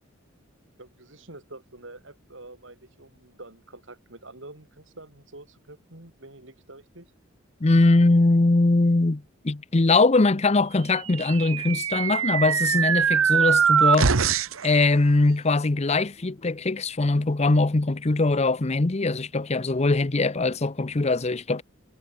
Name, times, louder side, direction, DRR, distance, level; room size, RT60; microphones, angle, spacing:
voice 1, 0.8-7.1, right 2 dB, 65° right, 4.2 m, -46 dB
voice 2, 7.6-21.6, left 2 dB, 30° left, 0.7 m, -22 dB
sound 1, 11.1-14.7, right 7 dB, 85° right, 1.1 m, -22 dB
head